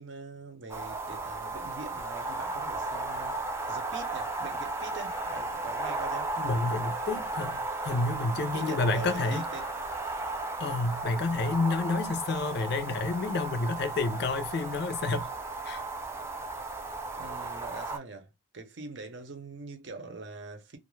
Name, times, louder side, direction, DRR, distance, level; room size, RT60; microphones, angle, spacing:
voice 1, 0.0-3.4 3.7-6.3 8.5-9.8 12.0-12.1 17.2-20.8, right 3 dB, 75° right, 0.7 m, -43 dB
sound 1, 0.7-18.0, right 2 dB, 15° right, 0.5 m, -35 dB
voice 2, 6.4-9.4 10.6-15.3 15.6-15.8, left 3 dB, 60° left, 0.4 m, -29 dB
2.4 x 2.1 x 3.1 m
head